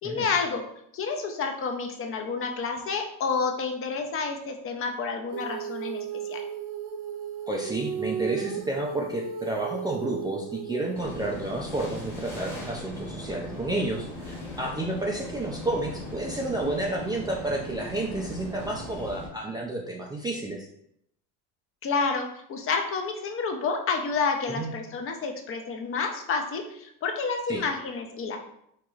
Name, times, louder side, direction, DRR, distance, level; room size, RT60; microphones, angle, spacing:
voice 1, 0.0-0.7 0.9-6.4 21.8-28.4, left 4 dB, 35° left, 4 dB, 0.6 m, -29 dB
Female singing, 5.3-11.0, right 7 dB, 55° right, 0.7 m, -35 dB
voice 2, 7.5-20.7 24.5-24.7 27.5-27.6, right 2 dB, 10° right, -2 dB, 0.3 m, -31 dB
sound 1, 10.9-19.3, left 1 dB, 5° left, 0.9 m, -39 dB
4.6 x 3.0 x 2.4 m, 0.74 s
cardioid pair, 125°, 38 cm